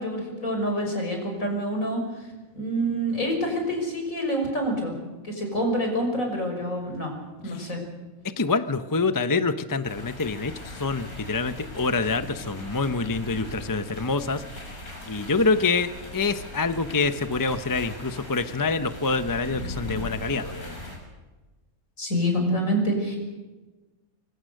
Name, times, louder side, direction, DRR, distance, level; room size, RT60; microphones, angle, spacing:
voice 1, 0.0-2.0 2.5-4.9 5.2-7.1 7.4-7.8 22.0-23.2, equal, 65° left, 3 dB, 6.4 m, -27 dB
voice 2, 8.2-20.8, left 4 dB, 20° left, 10 dB, 0.7 m, -26 dB
sound 1, 9.8-21.0, left 1 dB, 85° left, 7.3 m, -39 dB
25.0 x 24.5 x 6.6 m, 1.2 s
omnidirectional pair, 1.5 m